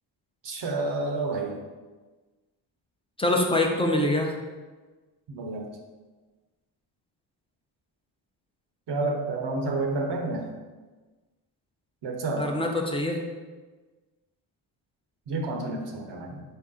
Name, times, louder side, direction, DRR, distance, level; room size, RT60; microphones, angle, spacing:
voice 1, 0.4-1.6 5.3-5.7 8.9-10.5 12.0-12.5 15.3-16.4, right 2 dB, 60° right, 2 dB, 0.8 m, -29 dB
voice 2, 3.2-4.3 12.4-13.2, left 1 dB, 10° left, 2 dB, 0.6 m, -24 dB
4.0 x 2.7 x 3.7 m, 1.3 s
supercardioid pair, 55°, 49 cm